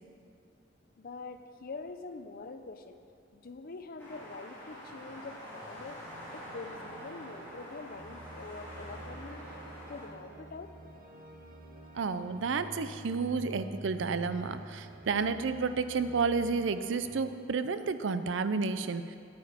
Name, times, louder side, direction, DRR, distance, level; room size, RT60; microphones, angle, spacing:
voice 1, 1.0-3.0 3.3-6.0 6.3-9.6 9.9-10.7, left 3 dB, 50° left, 9 dB, 0.6 m, -45 dB
sound 1, 4.0-10.1, equal, 10° left, 2.9 m, -46 dB
sound 2, 5.7-17.2, right 1 dB, 50° right, 0.9 m, -48 dB
voice 2, 11.9-19.2, right 4 dB, 75° right, 11 dB, 0.5 m, -31 dB
9.4 x 8.8 x 5.1 m, 2.3 s
head